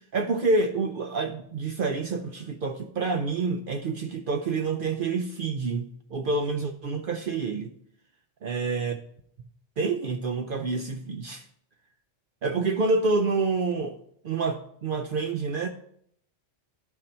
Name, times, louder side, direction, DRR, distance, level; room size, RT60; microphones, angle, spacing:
voice 1, 0.0-7.7 8.4-9.0 9.8-11.4 12.4-14.0 14.2-15.7, right 3 dB, 60° right, 5 dB, 0.6 m, -28 dB
11.0 x 3.9 x 4.3 m, 0.68 s
omnidirectional pair, 1.3 m